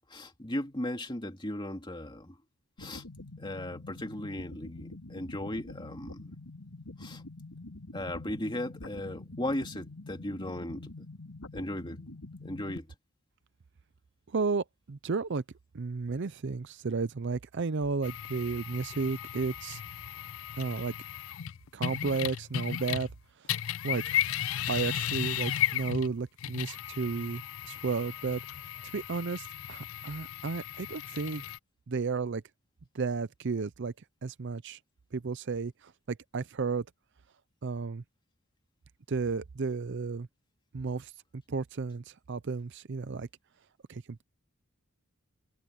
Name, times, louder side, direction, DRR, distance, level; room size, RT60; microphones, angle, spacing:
voice 1, 0.1-2.4 2.8-3.0 3.4-6.3 7.0-7.2 7.9-10.9 11.5-12.0 12.4-12.9, left 1 dB, 20° left, 2.7 m, -37 dB
sound 1, 2.8-12.8, left 2 dB, 80° left, 3.3 m, -46 dB
voice 2, 14.3-15.4 15.7-19.8 20.6-20.9 21.7-23.1 23.4-23.6 23.8-24.2 24.7-28.4 28.8-31.4 31.9-32.4 32.9-33.9 34.2-34.8 35.1-36.8 37.6-38.0 39.1-40.3 40.7-43.3 43.9-44.2, right 4 dB, 55° right, 0.5 m, -33 dB
sound 2, 18.0-23.2 23.4-31.6, left 11 dB, 65° left, 0.4 m, -35 dB
head